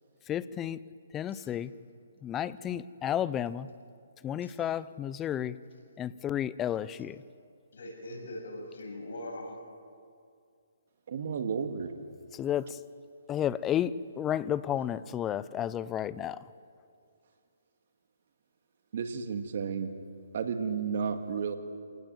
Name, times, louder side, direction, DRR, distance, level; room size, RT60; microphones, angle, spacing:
voice 1, 0.3-0.8 1.1-1.7 2.2-3.7 4.2-5.6 6.0-7.2 12.3-12.8 13.3-16.5, left 10 dB, 15° left, 17 dB, 0.6 m, -32 dB
voice 2, 7.7-9.6, left 1 dB, 65° left, 1 dB, 7.8 m, -41 dB
voice 3, 11.1-11.9 18.9-19.9 20.3-21.6, right 6 dB, 55° right, 7 dB, 2.1 m, -32 dB
27.0 x 19.0 x 7.8 m, 2.3 s
hypercardioid pair, 150°, 0 cm